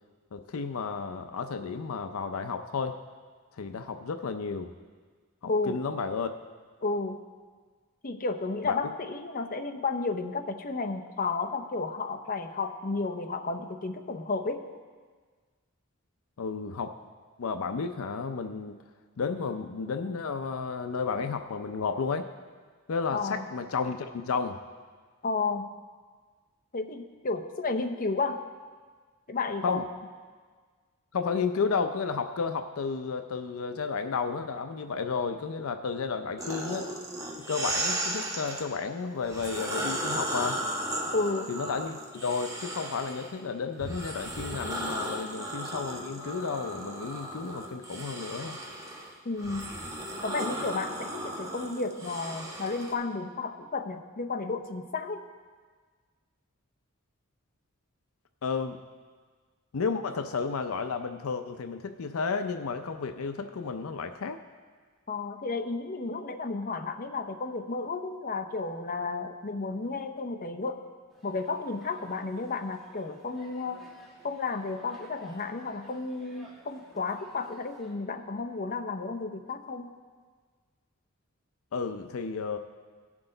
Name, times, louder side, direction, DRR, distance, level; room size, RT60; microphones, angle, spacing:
voice 1, 0.3-3.0 3.5-4.7 5.4-6.3 8.7-8.8 16.4-16.9 17.4-18.8 19.2-22.3 22.9-24.6 29.6-29.9 31.1-36.9 37.5-40.6 41.5-48.6 58.4-58.8 59.7-64.4 81.7-82.6, left 5 dB, 85° left, 8 dB, 0.5 m, -32 dB
voice 2, 6.8-7.2 8.0-14.6 23.1-23.5 25.2-25.6 26.7-28.4 29.3-29.8 41.1-41.5 49.2-49.7 50.2-55.2 65.1-70.8 71.2-73.8 74.2-79.9, left 3 dB, 45° left, 5 dB, 0.7 m, -32 dB
sound 1, 36.4-38.6 39.2-43.3 43.8-52.9, right 1 dB, 15° right, 1.3 m, -35 dB
sound 2, 71.1-77.9, equal, ahead, 2.0 m, -56 dB
18.0 x 6.1 x 3.9 m, 1.5 s
head